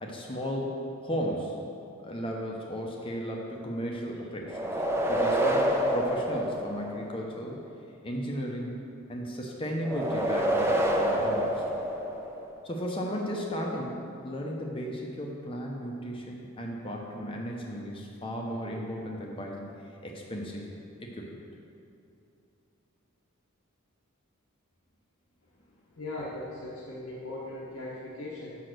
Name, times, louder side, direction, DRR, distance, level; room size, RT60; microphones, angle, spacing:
voice 1, 0.0-1.6 2.0-4.6 5.1-7.6 8.0-8.8 9.1-11.5 12.6-19.7 20.0-20.6 21.0-21.3, equal, 25° left, -1 dB, 0.7 m, -35 dB
sound 1, 4.5-7.2 9.8-12.6, right 1 dB, 10° right, 0.6 m, -27 dB
voice 2, 26.0-28.6, left 2 dB, 80° left, -6 dB, 1.0 m, -39 dB
6.0 x 5.5 x 6.4 m, 2.6 s
head